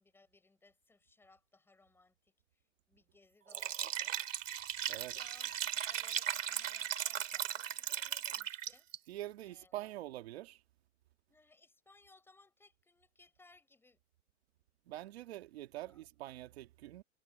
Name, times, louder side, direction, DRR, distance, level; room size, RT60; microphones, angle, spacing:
voice 1, 0.0-4.2 4.9-8.9 9.4-9.8 11.3-14.0 15.8-16.0, left 3 dB, 5° left, 6.1 m, -65 dB
Liquid, 3.5-9.0, right 10 dB, 90° right, 2.3 m, -37 dB
voice 2, 9.1-10.6 14.9-17.0, right 15 dB, 55° right, 1.7 m, -45 dB
hypercardioid pair, 150°, 37 cm